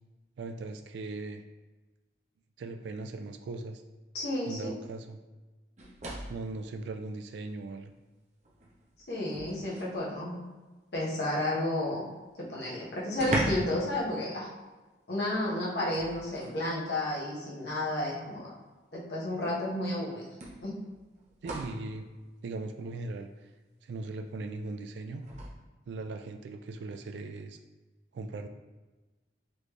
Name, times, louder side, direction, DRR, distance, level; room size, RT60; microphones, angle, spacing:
voice 1, 0.4-1.4 2.6-3.8 4.5-5.2 6.3-7.9 21.4-22.1 22.4-23.3 23.8-25.2 25.9-27.6 28.1-28.5, right 3 dB, 70° right, 6 dB, 0.3 m, -39 dB
voice 2, 4.1-4.8 9.1-10.3 10.9-12.1 12.4-14.5 15.1-18.5 18.9-20.2 20.6-20.8, left 1 dB, 65° left, -6 dB, 1.3 m, -32 dB
sound 1, 5.8-6.5 7.9-8.0 8.4-10.0 12.1-12.2 12.5-12.6 13.1-13.9 14.1-14.4 15.9-16.6 17.8-17.9 19.4-19.5 20.4-21.9 25.2-25.5, right 1 dB, 40° right, 0.7 m, -37 dB
4.2 x 3.2 x 3.2 m, 1.2 s
head